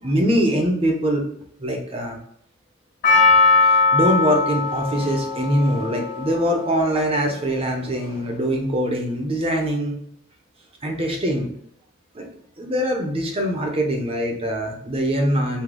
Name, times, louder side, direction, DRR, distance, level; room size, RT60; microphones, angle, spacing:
voice 1, 0.0-1.3 1.6-2.2 3.6-9.9 10.8-11.5 12.1-12.3 12.6-15.6, equal, 25° right, 2 dB, 0.7 m, -23 dB
Percussion, 3.0-7.4 8.0-8.1, left 4 dB, 45° left, 1.6 m, -20 dB
4.9 x 2.3 x 3.7 m, 0.68 s
head